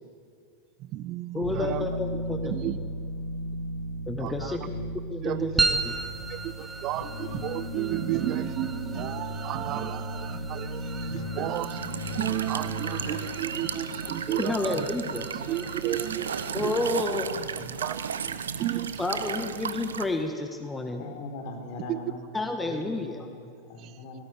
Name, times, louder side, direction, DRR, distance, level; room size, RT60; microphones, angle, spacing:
voice 1, 0.8-1.9 2.4-2.8 4.2-4.6 5.2-5.5 6.3-14.9 15.3-16.3 16.6-16.8 17.8-19.0 21.8-22.0 22.7-22.8 23.8-24.2, right 14 dB, 35° right, 15 dB, 0.6 m, -33 dB
voice 2, 1.3-2.5 4.1-4.6 5.1-6.0 14.4-15.2 16.5-17.8 19.0-21.0 22.3-23.3, left 2 dB, 10° left, 5 dB, 1.7 m, -30 dB
sound 1, 1.4-18.8, equal, 65° left, 2.3 m, -37 dB
sound 2, 5.6-20.2, right 3 dB, 10° right, 1.5 m, -37 dB
Walk footsteps / Chirp tweet / Stream, 11.6-20.0, right 7 dB, 70° right, 0.9 m, -34 dB
voice 3, 21.0-24.2, left 2 dB, 45° left, 3 dB, 4.2 m, -41 dB
19.0 x 17.0 x 9.2 m, 2.3 s
figure-of-eight pair, 90°, 0 cm